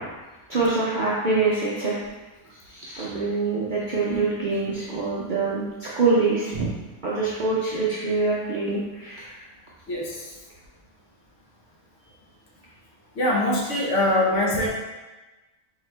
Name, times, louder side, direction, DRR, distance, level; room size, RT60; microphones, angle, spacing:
voice 1, 0.5-1.9 2.7-6.7 7.0-9.4, right 3 dB, 55° right, -7 dB, 0.5 m, -25 dB
voice 2, 9.9-10.2 13.2-14.7, left 1 dB, 60° left, -3 dB, 1.0 m, -23 dB
4.2 x 2.8 x 3.2 m, 1.2 s
omnidirectional pair, 1.5 m